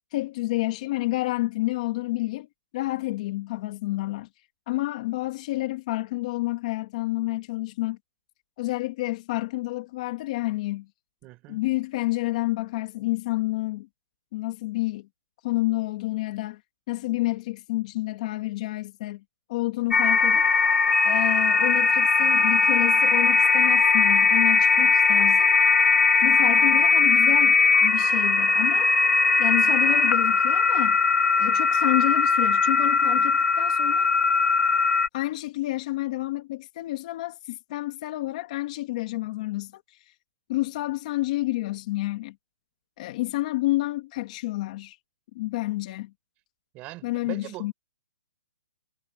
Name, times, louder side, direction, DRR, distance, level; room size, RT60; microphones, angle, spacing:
voice 1, 0.1-2.5 2.7-4.3 4.7-8.0 8.6-10.9 11.5-13.9 14.3-15.1 15.4-16.6 16.9-19.2 19.5-20.4 21.0-25.5 26.2-28.9 29.4-31.0 31.4-34.1 35.1-40.1 40.5-42.4 43.0-45.0 45.3-46.1 47.0-47.7, left 19 dB, 30° left, 1.8 m, -29 dB
voice 2, 11.2-11.6 46.7-47.7, right 19 dB, 15° right, 5.9 m, -40 dB
sound 1, 19.9-35.1, left 4 dB, 85° left, 2.2 m, -20 dB
hypercardioid pair, 175°, 8 cm